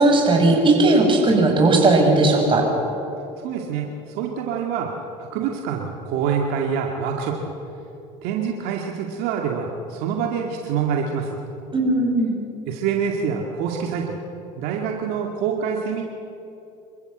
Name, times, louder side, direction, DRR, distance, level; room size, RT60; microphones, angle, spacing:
voice 1, 0.0-2.7 11.7-12.3, right 2 dB, 30° right, 1 dB, 6.3 m, -17 dB
voice 2, 3.4-4.9 5.2-7.5 8.2-11.4 12.7-14.2 14.6-16.0, right 7 dB, 70° right, 1 dB, 2.2 m, -26 dB
26.5 x 14.5 x 7.9 m, 2.9 s
supercardioid pair, 95°, 16 cm